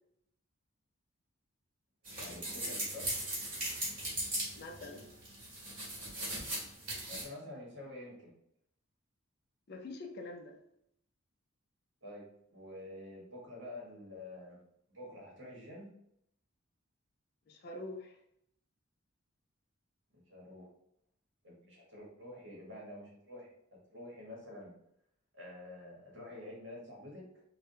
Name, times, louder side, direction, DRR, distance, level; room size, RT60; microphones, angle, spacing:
sound 1, 2.1-7.2, right 1 dB, 40° right, 1.4 m, -38 dB
voice 1, 2.1-3.3 7.1-8.3 12.0-14.6 14.9-15.9 20.1-20.7 21.4-23.5 23.9-24.7 25.3-27.3, left 1 dB, 55° right, -4 dB, 1.1 m, -48 dB
voice 2, 4.6-5.1 9.7-10.6 17.5-18.2, left 2 dB, 50° left, 4 dB, 0.4 m, -45 dB
3.3 x 2.2 x 2.6 m, 0.75 s
head